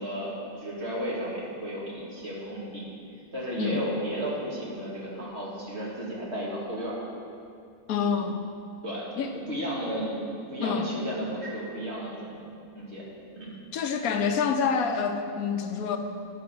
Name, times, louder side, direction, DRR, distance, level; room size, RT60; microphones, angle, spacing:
voice 1, 0.0-2.9 3.3-6.9 8.8-13.0 13.3-13.5, equal, 50° right, -6 dB, 2.5 m, -34 dB
voice 2, 7.9-8.4 9.2-9.4 10.6-10.9 13.7-16.0, left 6 dB, 80° left, 6 dB, 1.2 m, -27 dB
10.5 x 6.6 x 6.1 m, 2.5 s
omnidirectional pair, 1.5 m